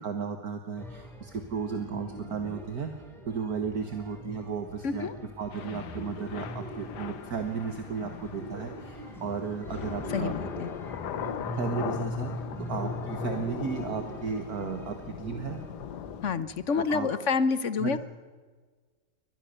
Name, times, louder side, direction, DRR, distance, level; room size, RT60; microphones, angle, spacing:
voice 1, 0.0-2.9 3.3-5.1 5.4-10.4 11.5-12.3 12.7-15.6 16.8-17.1 17.8-18.0, right 6 dB, 60° right, 6 dB, 2.0 m, -34 dB
sound 1, 0.8-16.9, left 1 dB, ahead, 3.6 m, -42 dB
sound 2, 1.7-15.4, equal, 75° right, 5.8 m, -45 dB
Thunder / Rain, 5.5-16.3, left 9 dB, 70° left, 1.6 m, -40 dB
voice 2, 16.2-18.0, left 5 dB, 50° left, 14 dB, 1.1 m, -27 dB
24.0 x 19.0 x 6.8 m, 1.4 s
omnidirectional pair, 1.9 m